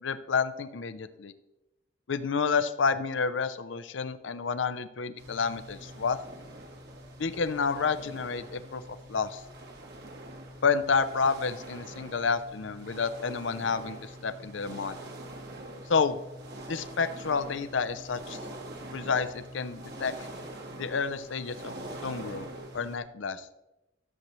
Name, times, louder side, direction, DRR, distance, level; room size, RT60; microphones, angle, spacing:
voice 1, 0.0-1.3 2.1-6.2 7.2-8.8 9.1-9.4 10.6-15.0 15.9-16.2 16.7-18.4 18.9-20.1 20.7-21.7 22.0-22.5 22.7-23.5, left 5 dB, 70° left, 13 dB, 0.6 m, -29 dB
sound 1, 5.2-23.0, right 1 dB, 60° right, 1.5 m, -44 dB
13.0 x 7.4 x 3.2 m, 0.97 s
head